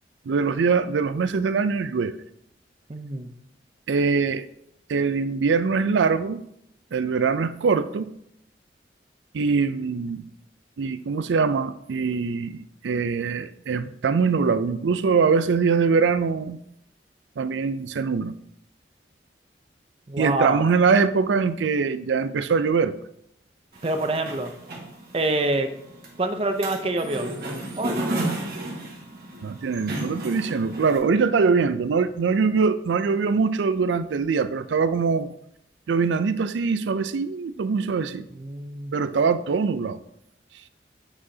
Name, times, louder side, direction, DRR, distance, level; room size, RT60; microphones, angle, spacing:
voice 1, 0.3-2.2 3.9-4.5 4.9-6.4 6.9-8.1 9.3-10.3 10.8-16.6 17.4-18.3 20.2-22.9 29.4-35.3 35.9-38.3 38.9-40.0, right 5 dB, 90° right, 0.4 m, -23 dB
voice 2, 2.9-3.3 20.1-20.6 23.8-24.5 25.1-25.7 26.2-27.3 27.8-28.0 38.3-38.9, right 2 dB, 30° right, 0.6 m, -26 dB
sound 1, 23.7-31.0, right 1 dB, 55° right, 1.5 m, -33 dB
8.7 x 4.8 x 2.7 m
head